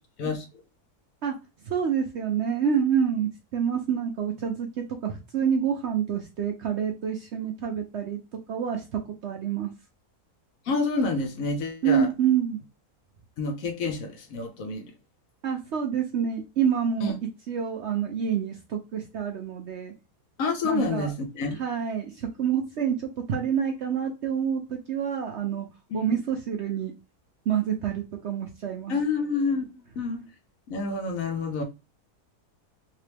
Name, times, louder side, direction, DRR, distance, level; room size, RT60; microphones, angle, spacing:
voice 1, 1.6-9.7 11.8-12.6 15.4-19.9 20.6-21.1 21.6-26.9 27.5-28.9, right 8 dB, 65° right, 0.7 m, -27 dB
voice 2, 10.7-12.1 13.4-14.9 17.0-17.1 20.4-21.6 25.9-26.1 28.9-30.2 30.7-31.6, left 3 dB, 65° left, 1.0 m, -28 dB
2.9 x 2.9 x 3.2 m
omnidirectional pair, 1.6 m